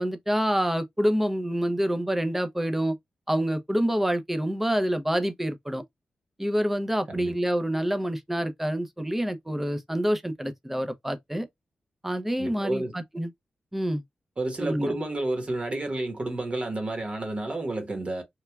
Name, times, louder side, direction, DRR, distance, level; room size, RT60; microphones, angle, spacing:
voice 1, 0.0-2.9 3.3-5.8 6.4-11.5 12.0-13.3 13.7-14.0 14.6-14.9, equal, 5° right, 0.5 m, -27 dB
voice 2, 12.4-12.9 14.4-18.2, right 2 dB, 40° right, 1.0 m, -30 dB
3.1 x 2.2 x 2.2 m
cardioid pair, 85°, 3 cm